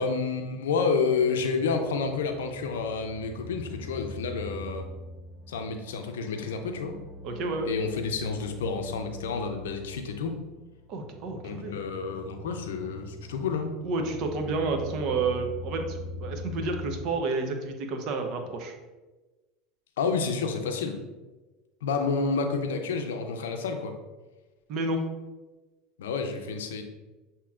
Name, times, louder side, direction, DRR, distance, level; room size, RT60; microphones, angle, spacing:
voice 1, 0.0-4.9 5.5-6.9 7.7-10.4 11.4-13.7 20.0-21.0 21.8-23.9 26.0-26.8, left 5 dB, 90° left, 5 dB, 0.5 m, -29 dB
sound 1, 1.9-17.0, left 2 dB, ahead, 1.2 m, -42 dB
voice 2, 7.2-7.7 10.9-11.8 13.8-18.8 24.7-25.0, right 3 dB, 55° right, 4 dB, 0.7 m, -30 dB
6.8 x 2.9 x 2.4 m, 1.2 s
hypercardioid pair, 100°, 0 cm